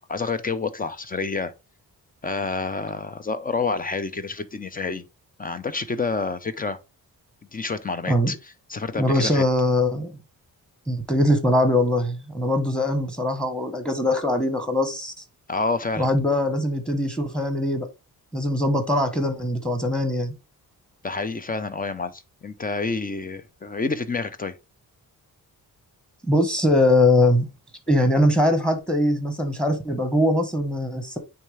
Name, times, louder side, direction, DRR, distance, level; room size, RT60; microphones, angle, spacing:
voice 1, 0.1-1.5 2.2-5.1 5.4-6.8 7.5-9.4 15.5-16.1 21.0-24.5, left 4 dB, 25° left, 0.6 m, -28 dB
voice 2, 9.0-10.1 10.9-15.1 16.0-17.9 18.3-20.3 26.2-27.5 27.9-31.2, left 1 dB, ahead, 1.3 m, -22 dB
8.9 x 3.3 x 3.4 m
wide cardioid pair, 145°, 36 cm